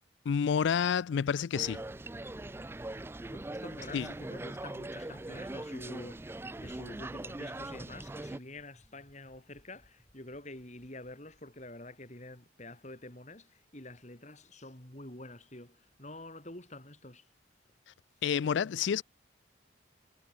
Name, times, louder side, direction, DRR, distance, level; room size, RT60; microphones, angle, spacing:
voice 1, 0.3-1.8 3.9-4.1 18.2-19.0, left 7 dB, 65° left, 0.3 m, -29 dB
sound 1, 1.5-8.4, right 2 dB, 10° right, 0.4 m, -41 dB
voice 2, 3.3-17.3, left 1 dB, 35° left, 4.2 m, -48 dB
sound 2, 9.2-11.9, equal, 5° left, 3.4 m, -63 dB
head